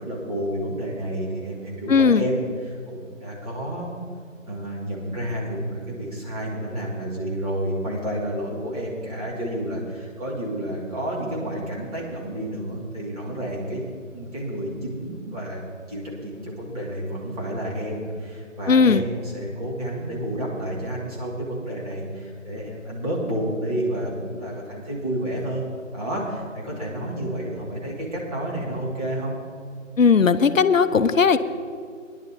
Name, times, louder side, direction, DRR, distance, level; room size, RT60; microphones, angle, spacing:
voice 1, 0.0-3.9 4.5-15.6 15.9-29.3, right 1 dB, 30° right, -5 dB, 2.8 m, -30 dB
voice 2, 1.9-2.2 18.7-19.0 30.0-31.4, left 5 dB, 75° left, 12 dB, 0.7 m, -17 dB
19.0 x 11.0 x 3.0 m, 2.1 s
figure-of-eight pair, 155°, 39 cm